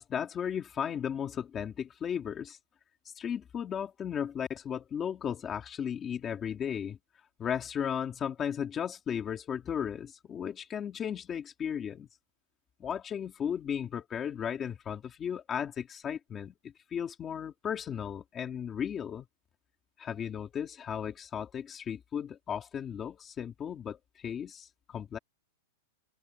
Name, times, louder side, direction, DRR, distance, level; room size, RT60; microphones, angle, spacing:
voice 1, 0.0-2.6 3.2-7.0 7.4-12.1 12.8-19.3 20.0-25.2, left 8 dB, 15° left, 2.1 m, -35 dB
supercardioid pair, 180°, 0 cm